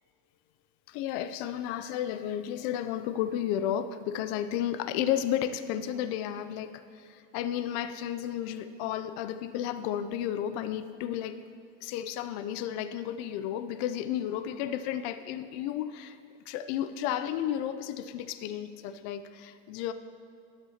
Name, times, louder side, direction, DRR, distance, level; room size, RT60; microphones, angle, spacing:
voice 1, 0.9-11.4 11.8-16.2 16.5-19.9, left 10 dB, 70° left, 12 dB, 0.6 m, -32 dB
12.5 x 6.8 x 2.9 m, 2.5 s
supercardioid pair, 95°, 41 cm